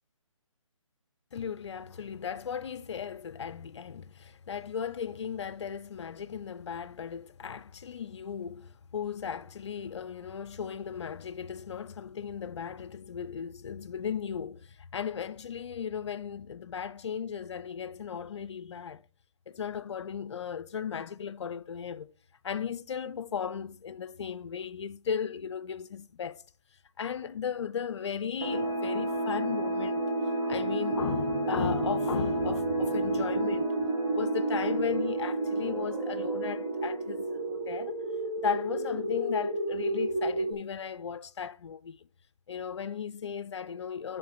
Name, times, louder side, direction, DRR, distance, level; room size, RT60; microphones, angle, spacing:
voice 1, 1.3-19.0 19.5-22.1 22.4-26.4 27.0-30.0 30.4-33.7 34.1-38.0 38.4-42.1 42.5-44.2, left 7 dB, 55° left, 0.5 m, -36 dB
sound 1, 28.4-37.7, right 2 dB, 45° right, 1.9 m, -30 dB
sound 2, 35.6-40.5, right 1 dB, 15° right, 0.4 m, -33 dB
9.2 x 3.8 x 4.0 m
hypercardioid pair, 155°, 17 cm